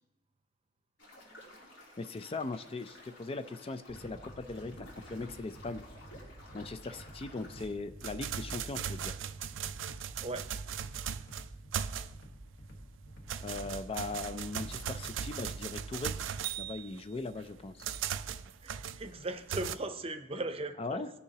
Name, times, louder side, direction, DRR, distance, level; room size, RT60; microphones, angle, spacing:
sound 1, 1.0-7.6, left 1 dB, 80° left, 3.1 m, -54 dB
voice 1, 2.0-5.8 6.5-9.1 13.4-16.2 16.6-17.8 20.8-21.1, left 3 dB, 30° left, 10 dB, 0.4 m, -39 dB
sound 2, 3.9-15.1, right 1 dB, 60° left, 1.3 m, -51 dB
sound 3, 7.6-12.4 12.8-19.8, right 8 dB, 85° right, 0.4 m, -38 dB
voice 2, 18.6-21.1, right 2 dB, 30° right, 8 dB, 0.7 m, -38 dB
17.5 x 6.8 x 2.9 m, 0.97 s
head